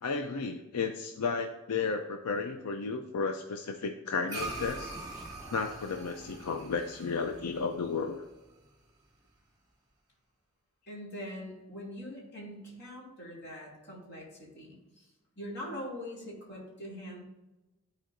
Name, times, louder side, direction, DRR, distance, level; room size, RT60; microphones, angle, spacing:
voice 1, 0.0-5.0 5.5-8.2, left 4 dB, 90° left, 5 dB, 0.5 m, -33 dB
sound 1, 4.3-8.9, right 2 dB, 15° right, 1.2 m, -43 dB
voice 2, 10.9-15.1 15.4-17.2, equal, 50° left, -4 dB, 2.5 m, -43 dB
13.0 x 4.4 x 2.6 m, 1.0 s
head